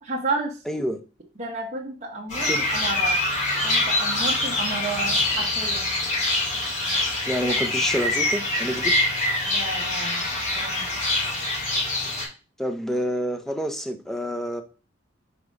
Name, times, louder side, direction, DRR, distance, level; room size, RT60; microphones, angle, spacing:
voice 1, 0.0-0.5 1.4-3.2 3.6-5.9 9.5-10.3 10.6-10.9, right 2 dB, 35° right, 1.0 m, -31 dB
voice 2, 0.7-1.0 2.5-2.7 7.3-8.9 12.6-14.6, equal, ahead, 0.6 m, -28 dB
sound 1, 2.3-12.3, left 2 dB, 40° left, 2.4 m, -24 dB
5.0 x 3.7 x 5.2 m
head